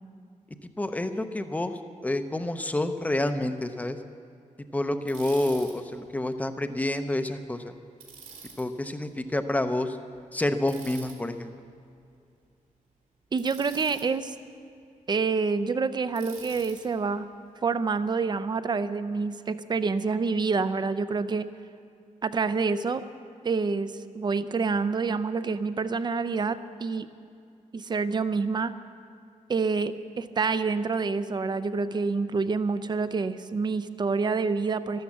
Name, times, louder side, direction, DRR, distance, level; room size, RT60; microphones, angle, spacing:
voice 1, 0.8-4.0 4.7-7.7 8.6-10.0 10.3-11.5, left 1 dB, 10° left, 8 dB, 0.6 m, -28 dB
Bicycle, 5.1-5.7 8.0-8.6 10.7-11.1 13.4-14.0 16.1-16.8, right 5 dB, 85° right, 3.4 m, -45 dB
voice 2, 13.3-14.3 15.1-17.3 17.6-21.5 22.2-23.0 23.4-27.1 27.7-28.7 29.5-35.0, right 4 dB, 35° right, 12 dB, 0.5 m, -27 dB
13.0 x 12.5 x 7.2 m, 2.4 s
wide cardioid pair, 165°, 13 cm